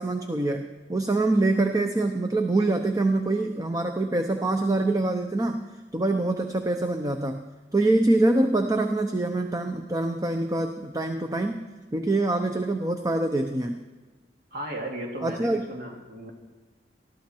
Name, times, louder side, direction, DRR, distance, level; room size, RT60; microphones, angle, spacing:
voice 1, 0.0-5.6 5.9-7.4 7.7-11.6 11.9-13.8 15.2-15.6, right 2 dB, 20° right, 6 dB, 0.8 m, -25 dB
voice 2, 14.5-16.3, right 1 dB, 60° right, 1 dB, 2.8 m, -35 dB
19.5 x 14.0 x 4.6 m, 1.2 s
head